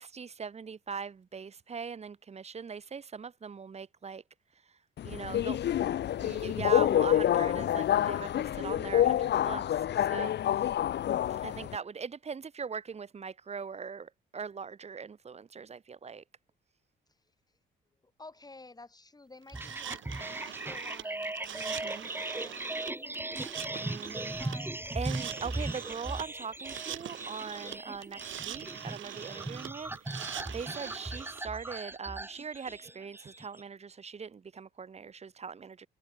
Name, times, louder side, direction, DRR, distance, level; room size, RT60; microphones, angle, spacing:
voice 1, 0.0-4.2 5.0-5.6 6.2-10.6 11.3-16.2 21.5-22.1 23.8-24.4 24.9-35.9, right 6 dB, 35° right, 1.0 m, -41 dB
Subway metro underground, 5.0-11.8, left 11 dB, 60° left, 0.8 m, -28 dB
voice 2, 18.0-25.6, left 3 dB, 20° left, 5.7 m, -54 dB
sound 1, 19.5-33.6, right 2 dB, 10° right, 2.1 m, -38 dB
sound 2, 19.5-31.4, right 12 dB, 75° right, 3.2 m, -43 dB
cardioid pair, 90°, 20 cm